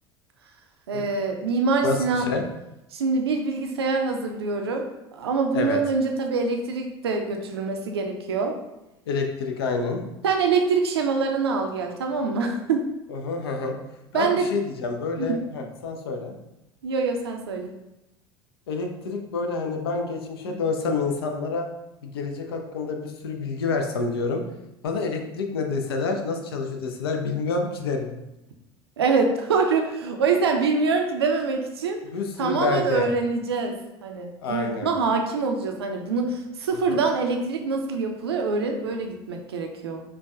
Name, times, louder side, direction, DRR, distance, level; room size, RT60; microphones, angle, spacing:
voice 1, 0.9-2.3 2.9-4.8 5.1-8.5 10.2-12.8 14.1-14.5 15.2-15.3 16.8-17.7 20.5-20.6 29.0-32.0 32.4-33.8 34.0-40.0, right 4 dB, 75° right, 3 dB, 0.4 m, -25 dB
voice 2, 1.8-2.4 5.5-5.8 9.1-10.0 13.1-13.8 14.1-16.3 18.7-21.7 22.0-24.4 24.8-28.1 32.0-33.1 34.4-34.9 36.9-37.0, left 4 dB, 70° left, 4 dB, 0.5 m, -28 dB
4.6 x 2.2 x 2.3 m, 0.93 s
figure-of-eight pair, 70°, 13 cm